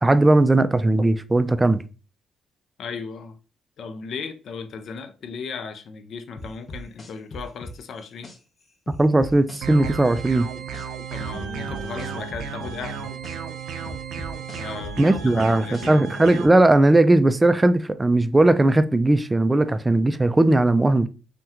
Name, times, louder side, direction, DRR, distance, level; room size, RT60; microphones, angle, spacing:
voice 1, 0.0-1.8 9.0-10.5 15.0-21.1, right 2 dB, 15° right, 0.3 m, -18 dB
voice 2, 2.8-3.4 3.8-8.3 11.1-13.0 14.5-16.0, left 5 dB, 65° left, 0.4 m, -36 dB
sound 1, 6.4-8.4 8.9-10.9 11.2-13.4 13.9-16.1, equal, 40° left, 0.8 m, -38 dB
sound 2, 9.6-16.5, right 6 dB, 75° right, 0.4 m, -34 dB
2.8 x 2.2 x 3.5 m
cardioid pair, 90°, 0 cm